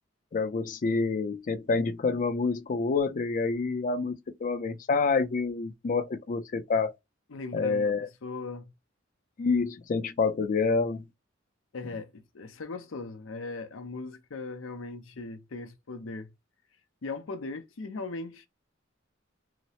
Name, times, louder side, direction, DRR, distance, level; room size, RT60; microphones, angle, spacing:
voice 1, 0.3-6.9 7.5-8.1 9.4-11.0, left 4 dB, 40° left, 0.4 m, -27 dB
voice 2, 7.3-7.9 8.2-8.6 11.7-16.3 17.0-18.5, left 3 dB, 80° left, 0.6 m, -38 dB
2.9 x 2.0 x 2.7 m
head